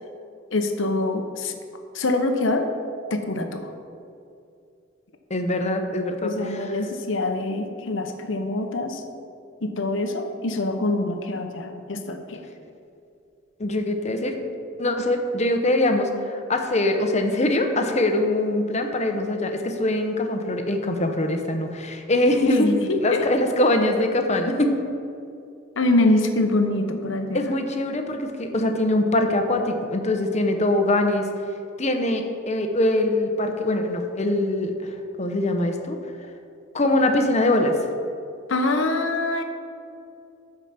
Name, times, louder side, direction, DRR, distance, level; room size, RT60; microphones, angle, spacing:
voice 1, 0.5-1.5 1.9-2.7 3.1-3.7 6.2-9.0 9.6-12.4 22.4-23.2 25.8-27.5 38.5-39.4, left 2 dB, 65° left, 5 dB, 0.9 m, -24 dB
voice 2, 5.3-6.8 13.6-14.4 14.8-24.8 27.3-31.3 31.8-34.7 35.2-36.0 36.7-37.8, left 1 dB, 35° left, 5 dB, 0.9 m, -23 dB
13.0 x 5.0 x 5.8 m, 2.5 s
head